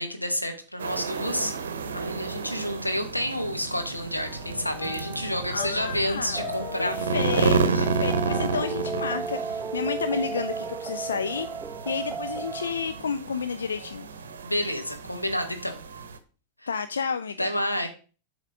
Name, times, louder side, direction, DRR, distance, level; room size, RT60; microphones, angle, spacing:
voice 1, 0.0-1.6 1.9-7.0 7.7-8.0 14.4-15.8 16.6-16.7 17.4-17.9, equal, 85° left, 1.1 m, -29 dB
sound 1, 0.8-16.2, right 4 dB, 65° right, 0.7 m, -31 dB
sound 2, 4.2-13.8 14.0-14.4 14.8-14.9, left 5 dB, 50° left, 1.8 m, -43 dB
voice 2, 5.5-6.4 6.8-11.5 11.9-14.1 16.7-17.5, left 5 dB, 70° left, 0.3 m, -31 dB
sound 3, 6.3-13.0, right 5 dB, 10° right, 0.5 m, -34 dB
7.3 x 3.5 x 4.9 m
figure-of-eight pair, 90°, 0 cm